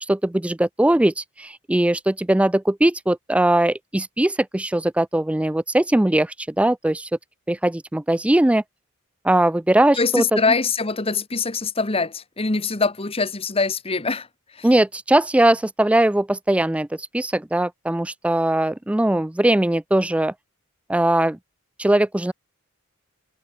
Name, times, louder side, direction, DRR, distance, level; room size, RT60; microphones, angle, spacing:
voice 1, 0.0-7.1 7.5-8.6 9.2-10.4 14.6-20.3 20.9-21.4 21.8-22.3, right 1 dB, 5° right, 0.3 m, -20 dB
voice 2, 10.0-14.3 14.6-14.7, left 4 dB, 25° left, 1.3 m, -23 dB
head